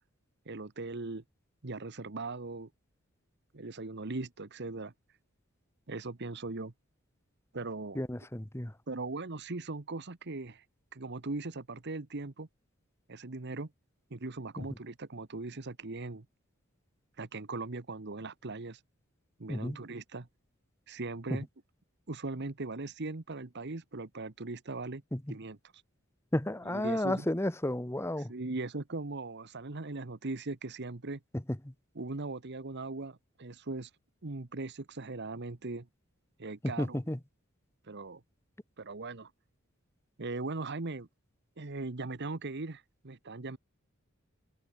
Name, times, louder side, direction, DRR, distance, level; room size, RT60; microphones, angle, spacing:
voice 1, 0.5-1.2 1.6-2.7 3.5-4.9 5.9-6.7 7.5-8.0 8.9-10.6 10.9-12.5 13.1-13.7 14.1-16.2 17.2-18.8 19.4-20.3 20.9-21.5 22.1-25.0 25.3-25.6 26.6-27.3 28.2-31.2 31.9-33.9 34.2-35.9 36.4-37.0 37.8-38.2 38.8-39.3 40.2-41.1 41.6-43.6, right 3 dB, 55° right, 1.2 m, -39 dB
voice 2, 8.0-8.7 14.6-14.7 19.5-19.8 25.1-25.2 26.3-28.3 36.8-37.2, left 1 dB, 10° left, 1.1 m, -32 dB
head